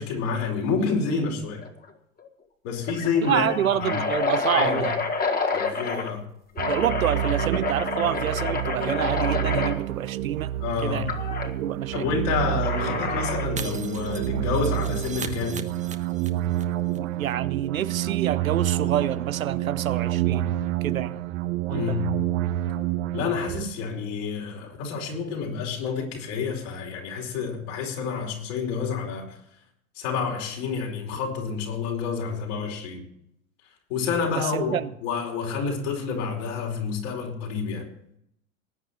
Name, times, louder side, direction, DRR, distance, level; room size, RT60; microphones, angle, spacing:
voice 1, 0.0-1.7 2.6-3.5 3.8-4.1 4.5-4.8 5.5-6.2 10.6-11.1 11.9-15.7 21.7-22.1 23.1-29.4 29.9-33.0 33.9-34.8 35.0-37.9, left 5 dB, 60° left, 4.8 m, -28 dB
sound 1, 1.6-1.9 2.2-2.3 2.8-6.1 6.6-9.8 11.1-11.5 12.6-13.6, left 4 dB, 20° left, 2.0 m, -28 dB
voice 2, 3.3-4.9 6.7-10.5 10.8-11.1 11.5-12.1 16.9-21.2 21.7-22.0 34.4-34.8, right 10 dB, 85° right, 0.8 m, -28 dB
sound 2, 6.6-23.6, right 13 dB, 60° right, 1.1 m, -28 dB
Shatter, 13.6-16.6 16.9-17.0 17.3-17.4, right 6 dB, 20° right, 1.1 m, -38 dB
19.5 x 9.1 x 4.4 m
hypercardioid pair, 85°, 40 cm